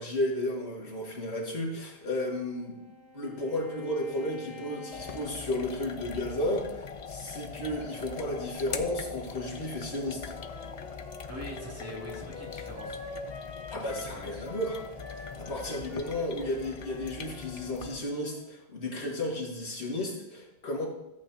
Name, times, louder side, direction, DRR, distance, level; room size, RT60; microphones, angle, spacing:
voice 1, 0.0-2.8 3.1-10.4 13.7-14.8 15.1-20.9, left 1 dB, 85° left, -2 dB, 2.1 m, -33 dB
Bowed string instrument, 1.8-6.2, left 2 dB, 50° right, 3.1 m, -50 dB
sound 1, 4.9-18.0, left 5 dB, 45° left, 0.5 m, -42 dB
Wind instrument woodwind instrument, 10.2-14.2 14.4-18.4, left 3 dB, 65° left, 1.4 m, -45 dB
voice 2, 11.3-13.0 13.3-13.4 13.7-14.4, right 1 dB, 15° right, -4 dB, 2.3 m, -44 dB
13.5 x 8.3 x 2.8 m, 0.94 s
omnidirectional pair, 1.1 m